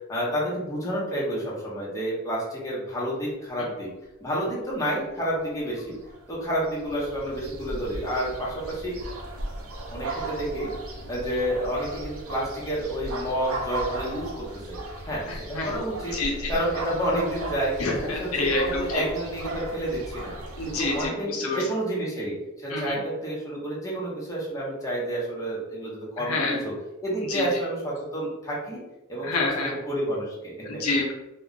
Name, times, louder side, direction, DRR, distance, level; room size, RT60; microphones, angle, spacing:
voice 1, 0.1-3.9 4.2-5.9 6.3-9.0 9.9-10.7 11.1-14.8 15.0-15.2 15.5-16.2 16.5-20.3 20.7-26.7 27.0-28.8 29.1-29.4 29.6-30.8, right 1 dB, 15° left, -5 dB, 0.8 m, -30 dB
sound 1, 5.7-21.1, right 1 dB, 85° right, 0.6 m, -36 dB
voice 2, 15.3-15.7 16.1-16.5 17.8-19.0 20.6-21.6 22.7-23.0 26.2-26.6 27.3-27.5 29.2-29.8 30.6-31.1, left 2 dB, 85° left, -1 dB, 0.7 m, -27 dB
2.3 x 2.2 x 3.7 m, 0.99 s
head